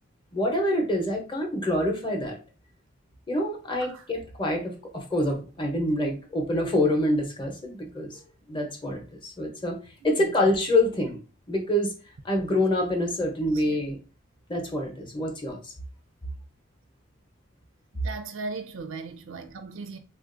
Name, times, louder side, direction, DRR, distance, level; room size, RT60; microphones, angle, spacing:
voice 1, 0.3-2.4 3.3-8.2 8.5-9.8 10.0-11.2 11.5-11.9 12.2-14.0 14.5-15.7, left 1 dB, 25° left, 0.7 m, -26 dB
voice 2, 13.5-13.8 18.0-20.0, right 4 dB, 75° right, 0.4 m, -37 dB
3.5 x 2.4 x 2.5 m
head